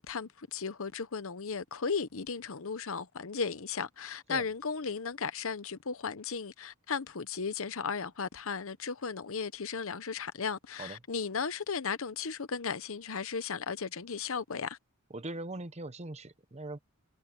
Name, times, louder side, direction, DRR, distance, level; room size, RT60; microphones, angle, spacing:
voice 1, 0.0-14.8, left 5 dB, 65° left, 0.9 m, -35 dB
voice 2, 15.1-16.8, right 2 dB, 30° right, 1.0 m, -41 dB
head